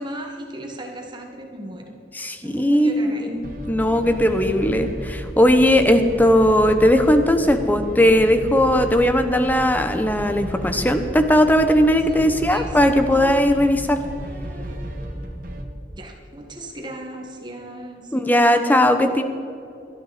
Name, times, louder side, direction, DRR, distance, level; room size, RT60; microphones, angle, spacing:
voice 1, 0.0-2.0 2.4-3.3 4.3-4.5 5.7-5.9 12.1-12.8 13.1-13.4 15.5-15.6 15.9-18.1, right 1 dB, 25° right, 3 dB, 1.6 m, -37 dB
voice 2, 2.1-14.0 18.1-19.2, equal, 10° left, 8 dB, 0.9 m, -18 dB
sound 1, 3.4-15.6, right 1 dB, 50° right, 1.6 m, -33 dB
18.0 x 12.5 x 4.2 m, 2.6 s
head